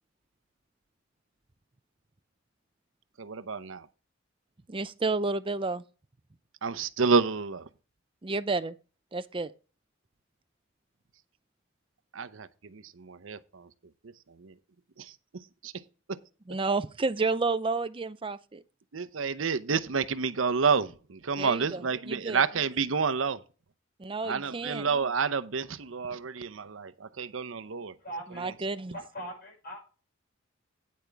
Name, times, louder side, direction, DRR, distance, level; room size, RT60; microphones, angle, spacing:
voice 1, 3.2-3.9 6.6-7.7 12.1-13.7 14.4-14.5 15.0-15.7 16.1-16.2 18.9-23.4 24.2-27.9, right 5 dB, 75° right, 0.8 m, -29 dB
voice 2, 4.7-5.8 8.2-8.8 9.1-9.5 16.5-18.6 21.4-22.5 24.0-24.9 28.3-29.0, right 3 dB, 25° right, 0.6 m, -31 dB
voice 3, 28.0-28.5 28.9-29.8, right 1 dB, 50° left, 5.7 m, -40 dB
9.5 x 8.6 x 3.4 m
head